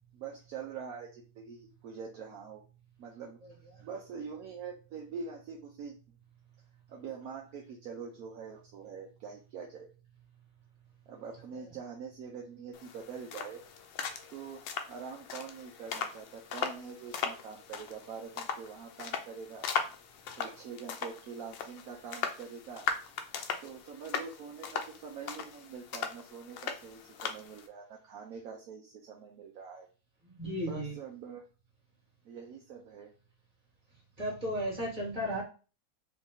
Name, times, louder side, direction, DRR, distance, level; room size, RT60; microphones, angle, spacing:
voice 1, 0.1-2.6 3.0-3.4 3.8-6.0 6.9-9.9 11.1-13.6 14.3-14.6 14.9-19.7 20.3-22.9 23.6-29.9 30.6-31.4 32.2-33.1, right 6 dB, 70° right, 0 dB, 0.9 m, -44 dB
sound 1, 12.7-27.7, left 7 dB, 75° left, 1.3 m, -39 dB
voice 2, 30.3-30.9 34.2-35.4, equal, 20° right, -3 dB, 1.7 m, -34 dB
4.1 x 2.6 x 3.7 m, 0.34 s
omnidirectional pair, 2.1 m